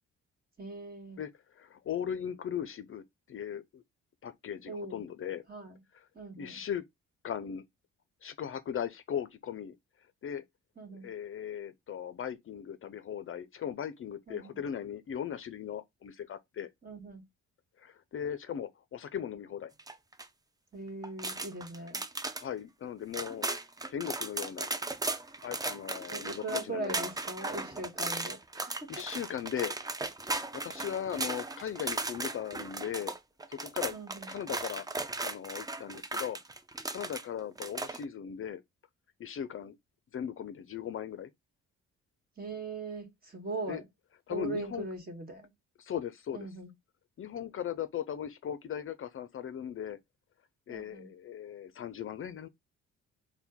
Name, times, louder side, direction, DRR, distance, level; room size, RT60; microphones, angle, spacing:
voice 1, 0.6-1.2 4.7-5.0 5.5-5.8 6.1-6.6 10.8-11.1 14.3-14.6 16.8-17.3 20.7-22.0 26.1-29.0 33.9-34.3 42.4-43.8 44.3-45.5 46.3-46.7 50.7-51.1, right 2 dB, 30° right, 1.5 m, -40 dB
voice 2, 1.2-3.8 4.2-5.4 6.4-6.8 7.2-7.6 8.2-9.8 10.2-10.4 10.9-16.7 17.8-19.7 22.4-23.5 23.9-24.7 25.4-27.0 28.9-29.8 30.5-33.1 33.5-34.0 34.3-34.9 35.2-36.4 36.9-38.6 39.2-39.8 40.1-41.3 43.7-43.8 44.3-44.9 45.8-46.5 47.2-50.0 50.7-52.5, left 9 dB, 45° left, 0.5 m, -38 dB
sound 1, 19.8-20.3 21.0-22.4 22.8-22.9 23.1-37.2 37.6-38.0, right 2 dB, 15° right, 0.4 m, -36 dB
4.3 x 2.2 x 3.5 m
cardioid pair, 90°, 30 cm